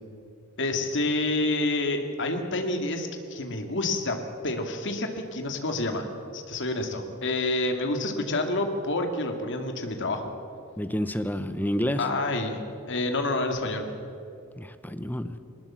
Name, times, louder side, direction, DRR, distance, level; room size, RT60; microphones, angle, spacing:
voice 1, 0.6-4.2 4.4-6.1 6.3-10.3 12.0-12.6 12.9-13.9, left 2 dB, 60° left, 5 dB, 2.4 m, -28 dB
voice 2, 10.8-12.0 14.6-15.4, equal, 10° left, 11 dB, 0.9 m, -29 dB
21.0 x 19.5 x 7.6 m, 2.5 s
head